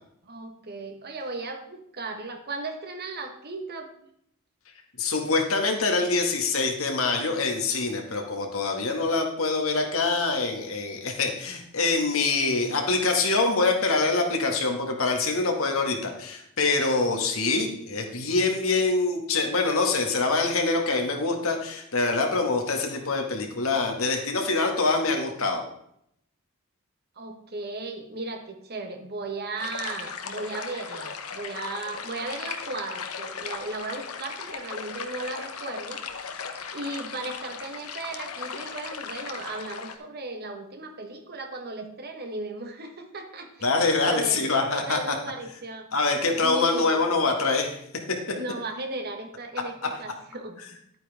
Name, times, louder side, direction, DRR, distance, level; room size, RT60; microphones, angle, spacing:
voice 1, 0.2-3.9 27.2-36.0 36.7-47.0 48.3-50.8, right 2 dB, 50° right, 5 dB, 1.3 m, -36 dB
voice 2, 5.0-25.6 43.6-45.1 45.9-47.8, left 3 dB, 70° left, 2 dB, 1.9 m, -25 dB
sound 1, 29.6-40.0, left 6 dB, 90° left, 1.0 m, -37 dB
11.0 x 9.1 x 3.5 m, 0.73 s
head